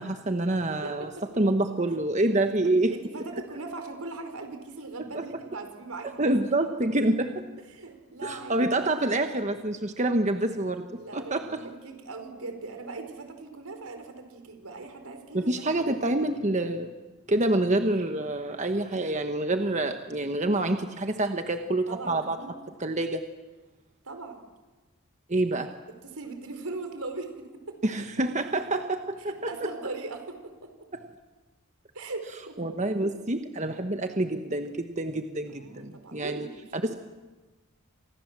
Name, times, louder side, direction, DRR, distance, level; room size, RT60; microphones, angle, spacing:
voice 1, 0.0-1.1 1.4-2.9 5.1-5.2 6.2-7.4 8.2-10.9 11.1-11.6 15.3-16.9 17.3-22.4 22.8-23.2 25.3-25.7 27.8-29.5 30.9-31.0 32.6-36.5 36.7-36.9, right 2 dB, 30° right, 6 dB, 1.2 m, -27 dB
voice 2, 0.8-1.2 2.3-6.3 7.7-8.7 11.0-16.2 21.9-22.6 24.0-24.4 26.0-27.8 29.3-30.7 31.9-32.6 35.5-36.8, right 3 dB, 80° right, 6 dB, 4.8 m, -40 dB
30.0 x 26.0 x 7.5 m, 1.2 s
head